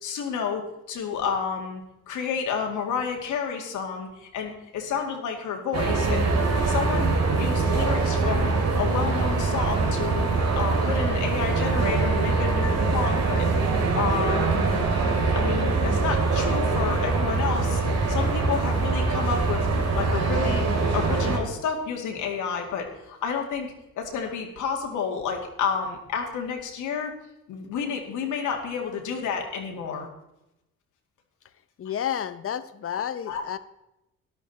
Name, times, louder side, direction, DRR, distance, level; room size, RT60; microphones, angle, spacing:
voice 1, 0.0-6.3 6.7-10.2 10.5-13.5 14.0-14.8 15.3-17.8 18.1-19.7 19.9-27.1 27.5-30.1 33.3-33.4, left 6 dB, 80° left, 2 dB, 2.3 m, -30 dB
sound 1, 5.7-21.4, right 3 dB, 60° right, 2.7 m, -23 dB
voice 2, 31.8-33.6, left 9 dB, 45° left, 14 dB, 0.8 m, -30 dB
12.5 x 11.0 x 4.2 m, 0.89 s
cardioid pair, 90°, 30 cm